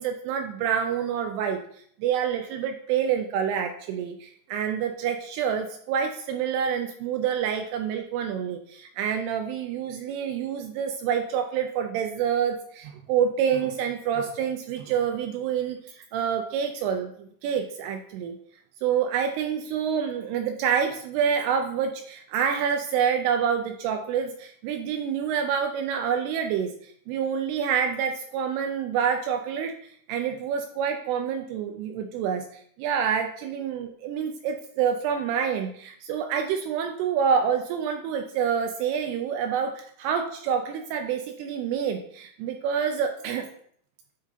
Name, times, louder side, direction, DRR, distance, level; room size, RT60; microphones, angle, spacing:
voice 1, 0.0-1.6 2.0-18.4 18.8-29.7 30.1-43.5, right 7 dB, 85° right, 5 dB, 2.3 m, -27 dB
9.5 x 4.1 x 2.6 m, 0.62 s
omnidirectional pair, 5.1 m